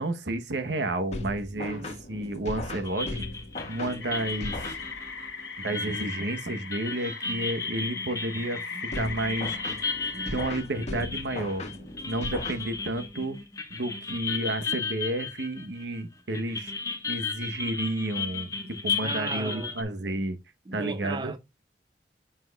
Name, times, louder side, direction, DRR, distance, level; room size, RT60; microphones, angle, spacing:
voice 1, 0.0-3.2 3.7-4.6 5.6-9.6 10.3-11.6 12.0-13.4 13.7-16.7 17.1-20.4 20.7-21.3, right 1 dB, 75° right, 1.0 m, -31 dB
sound 1, 1.1-5.3 8.9-13.1, left 1 dB, 35° left, 1.6 m, -37 dB
voice 2, 1.5-2.4 5.7-5.9 6.5-6.7 7.3-7.5 7.9-8.1 8.7-8.9 9.4-9.7 10.1-10.4 10.9-11.0 11.7-11.9 12.4-12.6 19.0-20.3 20.7-21.4, right 3 dB, 25° right, 0.4 m, -39 dB
sound 2, 2.8-16.0 16.3-19.8, left 5 dB, 20° left, 1.1 m, -35 dB
sound 3, 4.0-10.6, left 4 dB, 70° left, 1.3 m, -39 dB
9.5 x 6.0 x 2.3 m
head